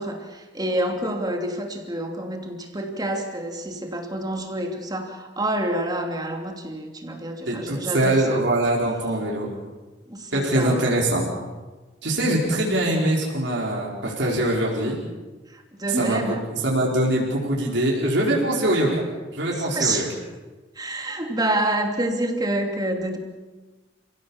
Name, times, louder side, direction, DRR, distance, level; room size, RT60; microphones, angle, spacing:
voice 1, 0.0-8.4 10.1-10.9 15.5-16.4 19.5-20.1 20.7-23.2, right 1 dB, 20° right, 3 dB, 2.9 m, -28 dB
voice 2, 7.5-9.5 10.3-11.2 12.0-15.0 15.9-19.0 19.3-20.1, right 1 dB, 65° right, -4 dB, 4.8 m, -23 dB
29.5 x 17.0 x 7.3 m, 1.3 s
head